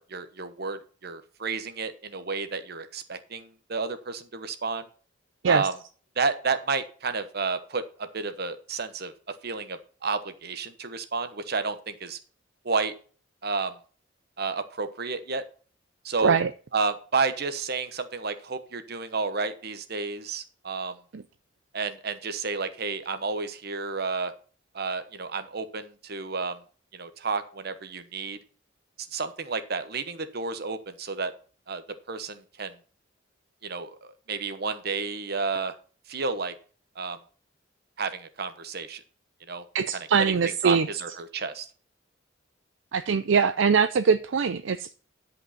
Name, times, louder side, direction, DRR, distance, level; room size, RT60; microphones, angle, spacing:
voice 1, 0.0-4.9 5.4-5.7 6.2-9.1 9.4-12.2 12.6-12.9 13.4-13.7 14.4-15.4 16.0-16.3 16.7-21.0 21.7-24.3 24.7-26.6 26.9-28.4 29.1-31.3 31.7-31.8 32.1-32.7 33.6-35.7 36.1-36.5 37.0-37.2 38.0-39.0 39.5-39.6 40.3-40.4 40.6-41.7, right 4 dB, 55° right, 1.1 m, -31 dB
voice 2, 39.7-40.9 42.9-44.9, right 6 dB, 70° right, 0.5 m, -22 dB
10.5 x 5.5 x 5.8 m
head